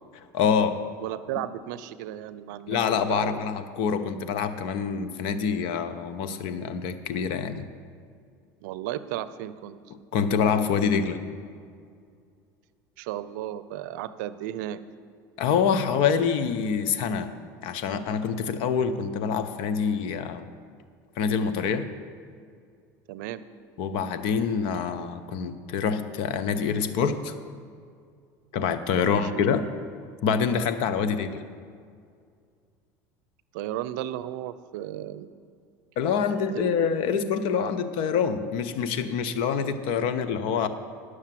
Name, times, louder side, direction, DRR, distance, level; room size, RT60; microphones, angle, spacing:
voice 1, 0.3-0.8 2.7-7.6 10.1-11.2 15.4-17.3 17.6-20.5 21.2-21.9 23.8-27.3 28.5-29.6 30.2-31.4 36.0-40.7, left 6 dB, 65° left, 11 dB, 0.8 m, -26 dB
voice 2, 1.0-3.5 8.6-9.8 13.0-14.8 23.1-23.4 29.0-29.4 33.5-35.3 36.5-37.0, right 12 dB, 75° right, 15 dB, 0.5 m, -34 dB
10.5 x 6.5 x 7.5 m, 2.2 s
supercardioid pair, 95°, 10 cm